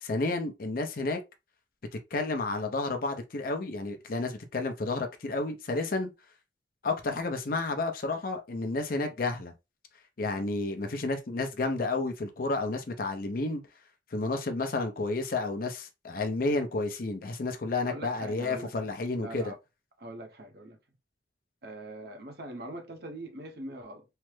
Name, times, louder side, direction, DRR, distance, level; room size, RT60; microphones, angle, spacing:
voice 1, 0.0-1.2 2.1-6.1 6.8-9.5 10.2-13.6 14.1-19.5, left 3 dB, 50° left, 0.5 m, -31 dB
voice 2, 17.8-19.6 20.0-20.8 21.6-24.0, right 1 dB, 60° right, 0.7 m, -42 dB
3.2 x 2.0 x 3.1 m
head